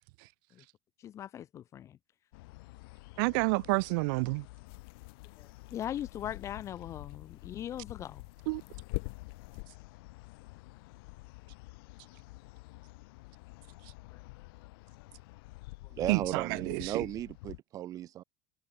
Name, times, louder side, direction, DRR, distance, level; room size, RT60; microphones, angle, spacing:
voice 1, 1.0-2.0 5.4-8.2 14.1-14.2, left 10 dB, 25° left, 0.6 m, -40 dB
sound 1, 2.3-17.6, left 23 dB, 75° left, 6.7 m, -50 dB
voice 2, 3.2-4.4 8.5-8.6 16.1-17.0, right 29 dB, 65° right, 0.4 m, -29 dB
sound 2, 4.7-9.6, left 34 dB, 60° left, 1.7 m, -45 dB
voice 3, 15.9-18.2, right 12 dB, 30° right, 0.9 m, -35 dB
cardioid pair, 180°, 12 cm